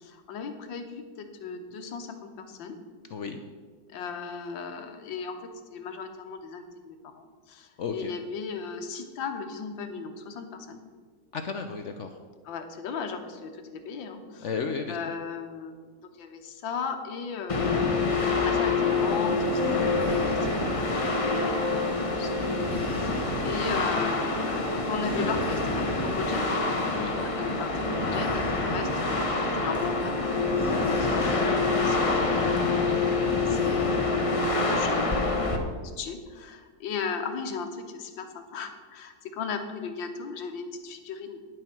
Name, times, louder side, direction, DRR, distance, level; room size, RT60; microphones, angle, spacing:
voice 1, 0.0-2.8 3.9-5.4 5.7-10.8 12.4-14.5 14.9-15.9 16.2-17.9 18.4-22.7 22.9-26.4 27.2-32.6 32.9-41.4, left 5 dB, 90° left, 6 dB, 1.8 m, -37 dB
voice 2, 3.1-3.4 7.8-8.1 11.3-12.2 14.4-15.0 23.7-23.8 26.9-27.2, left 5 dB, 70° left, 6 dB, 0.6 m, -33 dB
sound 1, 17.5-35.6, left 3 dB, 30° left, 0.6 m, -26 dB
10.0 x 7.5 x 6.0 m, 1.5 s
omnidirectional pair, 2.0 m